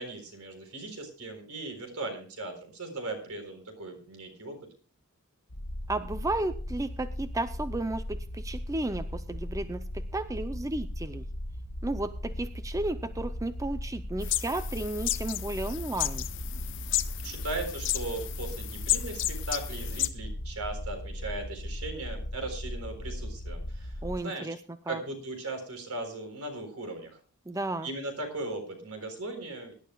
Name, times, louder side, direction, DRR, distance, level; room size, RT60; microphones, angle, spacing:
voice 1, 0.0-4.6 17.2-24.0 24.2-24.5 24.9-27.2 27.8-29.7, right 2 dB, 70° right, 5 dB, 3.9 m, -38 dB
sound 1, 5.5-24.2, equal, 85° left, 1.5 m, -38 dB
voice 2, 5.9-11.2 11.8-16.3 24.0-24.6 24.9-25.0 27.5-27.9, right 2 dB, 15° right, 11 dB, 0.5 m, -33 dB
sound 2, 14.2-20.1, left 14 dB, 55° left, 0.7 m, -33 dB
23.5 x 11.5 x 2.3 m, 0.38 s
head